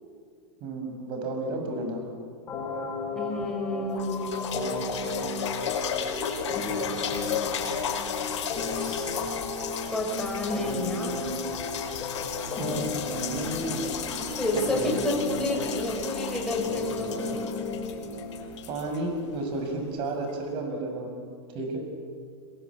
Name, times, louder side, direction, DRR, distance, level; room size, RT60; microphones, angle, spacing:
voice 1, 0.6-2.1 12.6-13.0 13.3-13.8 14.5-15.1 18.7-21.3 21.5-21.8, right 2 dB, 35° right, 3 dB, 6.1 m, -32 dB
sound 1, 2.5-18.5, left 2 dB, 25° left, 6.5 m, -34 dB
voice 2, 3.1-5.3 8.7-9.3 9.9-11.2 14.2-17.5, left 1 dB, 5° left, -1 dB, 5.7 m, -31 dB
sound 2, 3.4-3.5 3.9-19.7 20.3-20.4, left 7 dB, 80° left, 5.4 m, -34 dB
27.5 x 21.5 x 8.5 m, 2.2 s
supercardioid pair, 150°, 15 cm